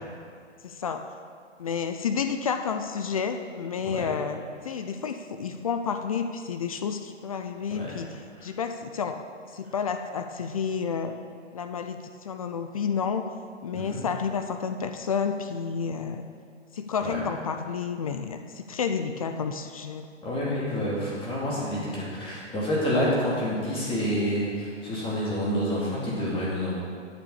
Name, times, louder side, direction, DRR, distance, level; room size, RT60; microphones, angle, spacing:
voice 1, 0.6-1.0 1.6-4.4 4.6-8.1 8.4-9.2 9.5-11.1 11.5-13.3 13.6-16.2 16.7-20.1, left 6 dB, 30° left, 7 dB, 0.4 m, -30 dB
voice 2, 20.2-26.8, equal, 15° left, -6 dB, 2.7 m, -28 dB
9.2 x 6.9 x 6.8 m, 2.2 s
hypercardioid pair, 140°, 38 cm